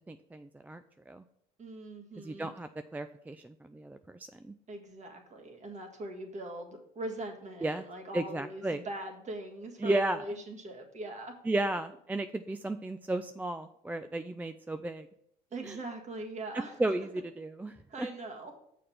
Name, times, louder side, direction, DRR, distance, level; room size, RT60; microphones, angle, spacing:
voice 1, 0.1-1.2 2.2-4.5 7.6-7.8 8.1-8.8 9.8-10.2 11.4-15.1 15.6-15.8 16.8-18.1, right 2 dB, 10° right, 9 dB, 0.3 m, -34 dB
voice 2, 1.6-2.5 4.7-11.3 15.5-16.8 17.9-18.5, right 2 dB, 40° right, 3 dB, 1.8 m, -41 dB
6.7 x 5.0 x 5.9 m, 0.74 s
supercardioid pair, 80°, 19 cm